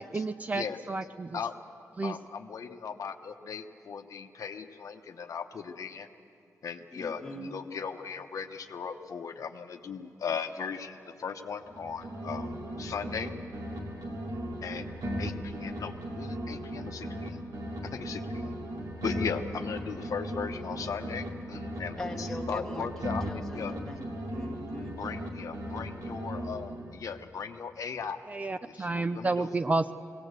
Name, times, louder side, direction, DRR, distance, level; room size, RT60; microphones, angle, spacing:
voice 1, 0.1-1.4 2.0-2.1 28.3-29.9, right 3 dB, 25° right, 10 dB, 0.4 m, -30 dB
voice 2, 2.0-6.1 6.6-12.5 12.8-13.3 14.6-14.8 15.2-17.4 17.8-18.5 19.0-23.8 24.9-28.2 28.6-29.5, left 6 dB, 70° left, 6 dB, 0.9 m, -38 dB
voice 3, 6.9-7.6 22.0-25.0, left 1 dB, 10° left, 0 dB, 1.7 m, -42 dB
sound 1, 11.6-13.3 13.5-17.3 17.5-21.3 21.5-25.3 25.5-27.0, equal, 90° right, 2.3 m, -37 dB
20.0 x 17.5 x 8.1 m, 2.6 s
wide cardioid pair, 130°, 6 cm